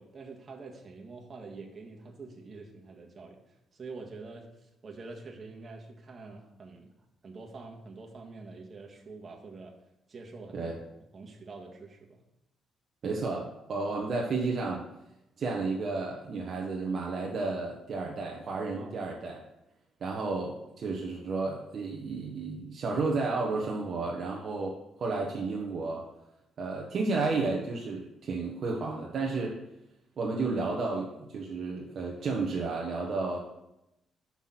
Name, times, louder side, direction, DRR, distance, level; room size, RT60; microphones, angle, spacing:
voice 1, 0.0-6.9 7.2-9.8 10.1-10.7 11.1-12.2 18.7-19.0, right 3 dB, 40° right, 1 dB, 1.6 m, -46 dB
voice 2, 13.0-14.8 15.4-19.4 20.0-26.0 26.6-29.6 30.2-33.4, right 3 dB, 55° right, -1 dB, 1.2 m, -32 dB
5.9 x 5.9 x 5.9 m, 0.86 s
cardioid pair, 90°, 0 cm